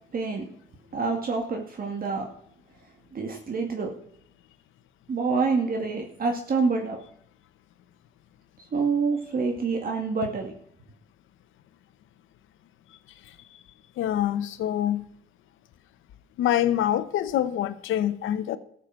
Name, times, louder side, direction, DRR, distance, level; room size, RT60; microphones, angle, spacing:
voice 1, 0.1-0.5 0.9-2.3 3.1-3.9 5.1-7.0 8.7-10.5, right 4 dB, 45° right, 3 dB, 2.2 m, -27 dB
voice 2, 14.0-15.0 16.4-18.6, left 11 dB, 85° left, 13 dB, 1.1 m, -25 dB
13.5 x 6.8 x 7.4 m, 0.66 s
cardioid pair, 90°, 20 cm